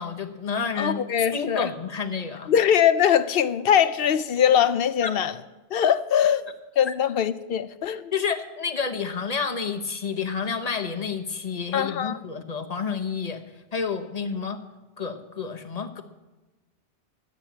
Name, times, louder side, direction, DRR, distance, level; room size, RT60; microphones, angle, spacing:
voice 1, 0.0-1.0 1.3-2.5 5.0-5.2 6.9-7.0 8.1-13.4 13.7-14.6 15.0-16.0, left 5 dB, 35° left, 1.1 m, -29 dB
voice 2, 0.8-1.7 2.5-5.4 5.7-6.4 6.8-8.1 11.7-12.2, left 9 dB, 60° left, 0.8 m, -22 dB
13.0 x 8.3 x 7.2 m
omnidirectional pair, 1.1 m